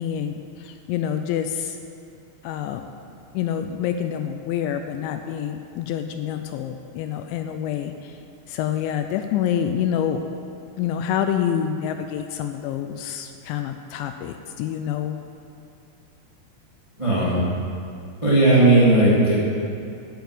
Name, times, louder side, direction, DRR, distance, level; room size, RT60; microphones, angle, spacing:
voice 1, 0.0-1.8 2.4-2.9 3.3-8.2 8.5-10.2 10.8-15.2, left 9 dB, 85° left, 7 dB, 2.7 m, -27 dB
voice 2, 17.0-17.4 18.2-19.3, right 2 dB, 25° right, -8 dB, 0.7 m, -16 dB
11.5 x 7.0 x 7.9 m, 2.5 s
omnidirectional pair, 5.5 m